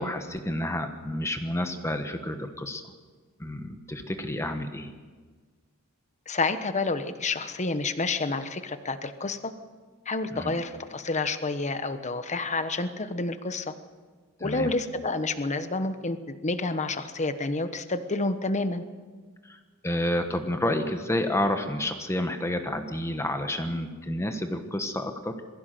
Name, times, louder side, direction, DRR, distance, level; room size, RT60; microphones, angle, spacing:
voice 1, 0.0-2.8 3.4-4.9 10.3-10.5 14.4-14.7 19.4-25.4, left 1 dB, 15° left, 6 dB, 1.3 m, -30 dB
voice 2, 6.3-9.5 10.1-13.7 14.4-18.8, left 3 dB, 35° left, 10 dB, 1.2 m, -29 dB
22.0 x 15.5 x 7.7 m, 1.5 s
head